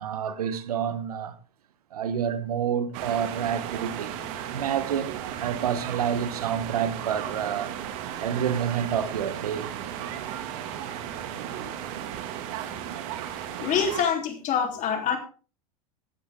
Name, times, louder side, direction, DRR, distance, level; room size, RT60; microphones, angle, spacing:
voice 1, 0.0-1.4 1.9-7.7 8.2-9.7 10.2-11.1 11.4-11.7, right 8 dB, 90° right, 1.3 m, -29 dB
sound 1, 2.9-14.0, right 10 dB, 65° right, 2.3 m, -35 dB
voice 2, 13.6-15.2, left 7 dB, 40° left, 3.6 m, -25 dB
15.5 x 10.5 x 3.7 m
hypercardioid pair, 105°, 19 cm